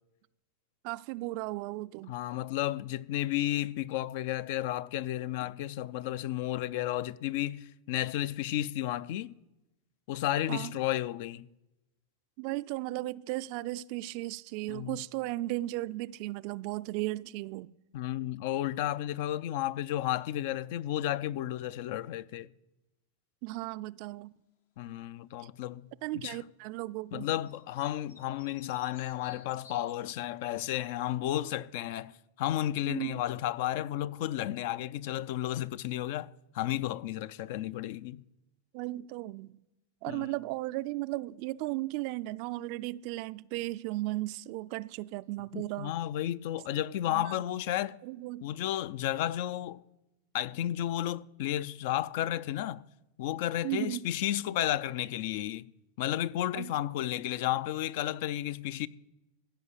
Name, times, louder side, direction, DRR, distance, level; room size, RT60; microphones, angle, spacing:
voice 1, 0.8-2.1 10.5-10.7 12.4-17.7 23.4-24.3 26.0-27.3 32.9-33.2 38.7-39.6 40.0-45.9 47.1-47.3 48.0-48.5 53.6-54.1 56.5-56.7, right 18 dB, 55° right, 0.3 m, -36 dB
voice 2, 2.1-9.3 10.1-11.5 14.7-15.0 17.9-22.5 24.8-25.9 26.2-26.4 27.1-32.1 32.4-38.2 40.1-40.3 45.5-48.0 48.4-49.8 50.3-52.8 53.2-55.7 56.0-58.9, left 13 dB, 60° left, 0.4 m, -32 dB
sound 1, 27.5-30.6, left 6 dB, 80° left, 1.4 m, -54 dB
15.0 x 5.1 x 8.2 m
supercardioid pair, 125°, 0 cm